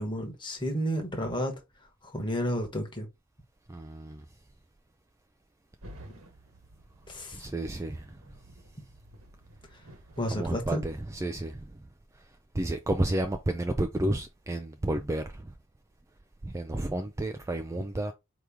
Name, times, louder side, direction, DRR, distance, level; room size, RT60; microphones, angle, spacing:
voice 1, 0.0-1.6 2.0-3.1 7.1-7.4 9.7-9.8 10.2-10.8, equal, 20° left, 1.2 m, -31 dB
voice 2, 3.7-4.2 7.3-8.2 10.3-11.8 12.1-12.2 12.5-15.5 16.4-18.1, right 1 dB, 15° right, 0.3 m, -31 dB
sound 1, 5.8-11.6, right 1 dB, 75° right, 1.2 m, -53 dB
4.7 x 3.0 x 3.5 m
head